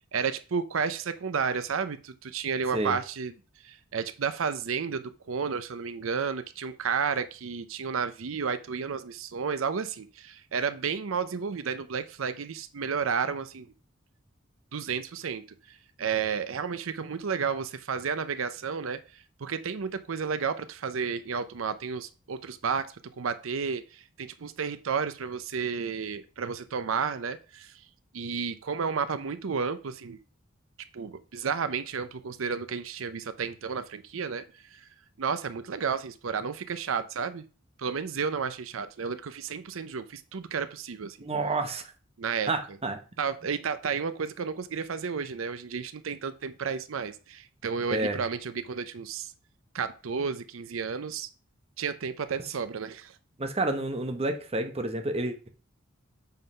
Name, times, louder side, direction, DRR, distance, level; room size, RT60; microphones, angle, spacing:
voice 1, 0.1-3.3 3.6-13.7 14.7-27.8 28.1-30.2 30.9-34.9 35.2-37.4 37.8-41.3 42.2-42.5 43.2-49.3 49.7-51.3 51.8-53.2, right 6 dB, 85° right, 0.6 m, -32 dB
voice 2, 41.2-41.8 42.5-43.0 47.9-48.2 53.4-55.5, right 2 dB, 30° right, 1.0 m, -29 dB
7.4 x 3.8 x 5.5 m
head